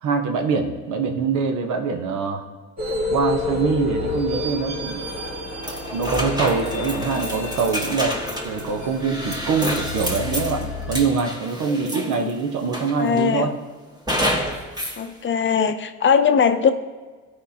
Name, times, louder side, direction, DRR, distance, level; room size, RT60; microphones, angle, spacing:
voice 1, 0.0-2.4 3.1-5.1 5.9-13.5, right 5 dB, 80° right, 4 dB, 1.0 m, -24 dB
sound 1, 2.8-11.0, left 2 dB, 60° right, 2.0 m, -29 dB
sound 2, 5.6-12.3 12.7-13.3 14.1-15.0, equal, 15° right, 1.5 m, -29 dB
voice 2, 13.0-13.5 15.0-16.7, left 7 dB, 40° left, 9 dB, 0.6 m, -20 dB
13.5 x 5.0 x 2.8 m, 1.4 s
cardioid pair, 90°, 30 cm